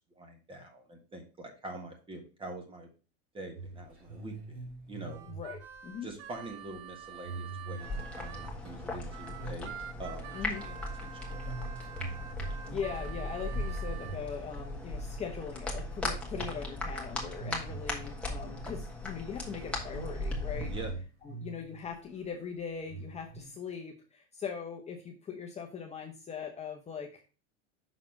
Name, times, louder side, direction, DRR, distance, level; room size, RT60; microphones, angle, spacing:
voice 1, 0.0-2.9 3.3-5.3 6.0-9.7 10.0-11.6 20.6-20.9, right 2 dB, 15° right, 3 dB, 1.6 m, -45 dB
sound 1, 3.5-9.0 9.3-9.8 10.0-14.9 15.2-15.7 16.2-16.6 17.0-19.1 19.3-19.5 19.9-21.9 22.2-22.3 22.8-23.5, right 4 dB, 45° right, 3.4 m, -45 dB
Harmonica, 5.1-8.6 9.1-14.2, right 10 dB, 75° right, 0.9 m, -47 dB
voice 2, 5.3-6.1 10.3-10.6 12.4-20.7 21.2-27.2, left 6 dB, 20° left, 1 dB, 0.8 m, -40 dB
sound 2, 7.8-20.9, left 1 dB, 5° left, 1.6 m, -38 dB
6.1 x 4.1 x 5.0 m, 0.35 s
supercardioid pair, 125°, 33 cm